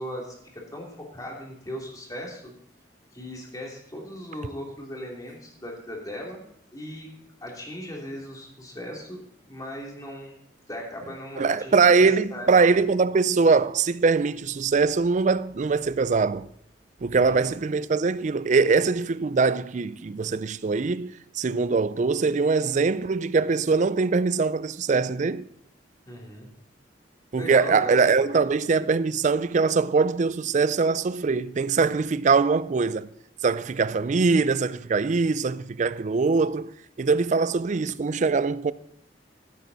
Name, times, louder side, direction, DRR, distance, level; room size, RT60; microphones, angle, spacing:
voice 1, 0.0-2.5 3.1-6.4 6.7-7.1 7.4-10.4 10.7-12.5 17.1-17.5 26.1-26.5 27.3-28.5, equal, 20° left, 2.8 m, -38 dB
voice 2, 11.4-16.5 17.0-25.5 27.3-33.1 33.4-36.7 37.0-38.7, right 4 dB, 45° right, 0.4 m, -22 dB
14.5 x 8.4 x 4.0 m
head